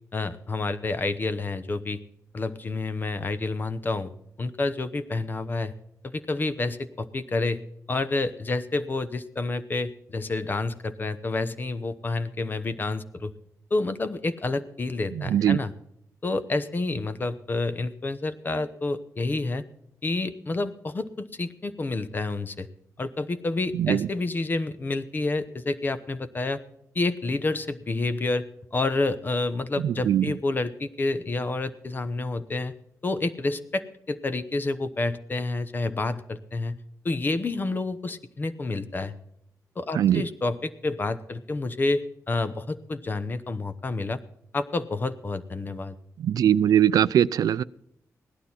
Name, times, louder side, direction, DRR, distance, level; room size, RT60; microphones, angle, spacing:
voice 1, 0.1-2.0 2.3-4.1 4.4-5.7 6.0-7.6 7.9-13.3 13.7-15.7 16.2-19.6 20.0-22.7 23.0-26.6 26.9-28.5 28.7-32.7 33.0-36.8 37.0-39.1 39.8-44.2 44.5-46.0, left 2 dB, 30° left, 0.9 m, -29 dB
voice 2, 15.3-15.6 23.8-24.1 29.8-30.3 40.0-40.2 46.2-47.6, right 10 dB, 85° right, 0.4 m, -21 dB
16.5 x 11.5 x 4.2 m
wide cardioid pair, 130°, 6 cm